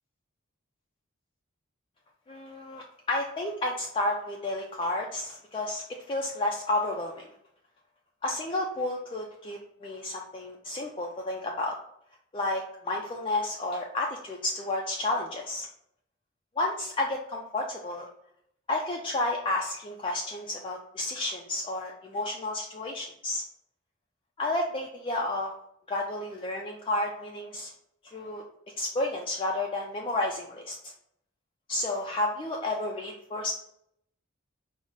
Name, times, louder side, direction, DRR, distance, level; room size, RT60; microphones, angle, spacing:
voice 1, 2.3-7.3 8.2-11.8 12.3-15.7 16.6-18.1 18.7-23.4 24.4-25.5 25.9-27.7 28.0-28.4 28.8-30.9 31.7-33.5, left 2 dB, 25° left, -1 dB, 0.3 m, -31 dB
5.0 x 2.0 x 3.8 m, 0.73 s
head